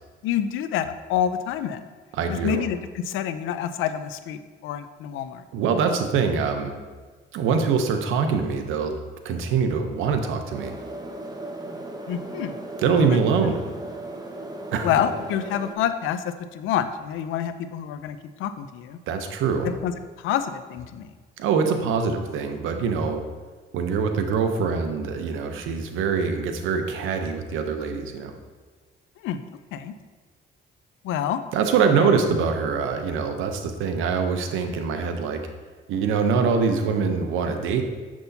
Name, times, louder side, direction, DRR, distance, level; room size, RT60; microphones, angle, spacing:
voice 1, 0.2-1.8 2.3-5.4 12.1-12.6 13.1-13.2 14.8-16.2 16.5-19.0 19.6-19.9 20.2-21.1 29.2-29.4 29.7-29.9 31.0-31.4 32.0-32.1, left 9 dB, 90° left, 11 dB, 0.5 m, -27 dB
voice 2, 2.2-2.7 5.5-6.8 7.3-9.0 9.2-10.7 12.8-13.6 14.7-14.9 19.1-19.7 21.4-23.2 23.7-28.4 31.5-35.4 35.9-37.8, right 5 dB, 90° right, 6 dB, 0.7 m, -24 dB
sound 1, 10.5-15.7, right 2 dB, 20° right, 0.7 m, -36 dB
6.8 x 6.0 x 2.7 m, 1.5 s
cardioid pair, 90°, 20 cm